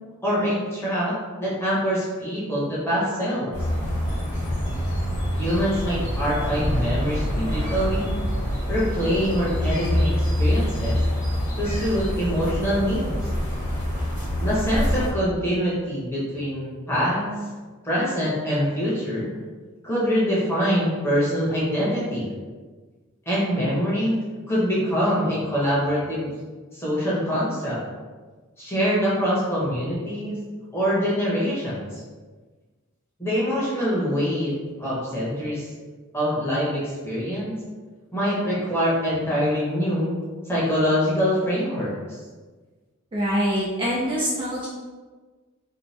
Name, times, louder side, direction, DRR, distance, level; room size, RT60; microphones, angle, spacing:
voice 1, 0.2-3.5 5.3-8.1 8.7-11.0 11.6-13.2 14.4-17.3 17.8-19.3 19.8-22.3 23.3-24.2 24.5-26.3 26.7-27.8 28.6-30.4 30.7-32.0 33.2-35.7 36.1-37.6 38.1-42.2, equal, 10° left, -8 dB, 0.9 m, -24 dB
sound 1, 3.5-15.1, equal, 35° left, 1.1 m, -25 dB
voice 2, 43.1-44.7, equal, 25° right, -7 dB, 0.4 m, -24 dB
2.7 x 2.1 x 3.2 m, 1.4 s
head